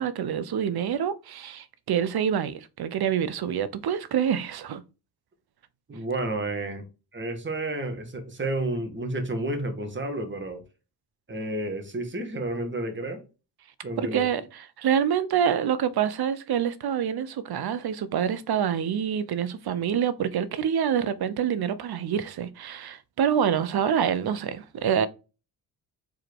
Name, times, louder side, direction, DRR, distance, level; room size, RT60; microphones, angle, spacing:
voice 1, 0.0-4.8 14.0-25.1, right 8 dB, 55° right, 0.9 m, -26 dB
voice 2, 5.9-6.8 7.1-10.6 11.3-13.2 13.8-14.3, right 1 dB, 25° right, 1.9 m, -31 dB
4.7 x 4.5 x 4.7 m
cardioid pair, 95°, 44 cm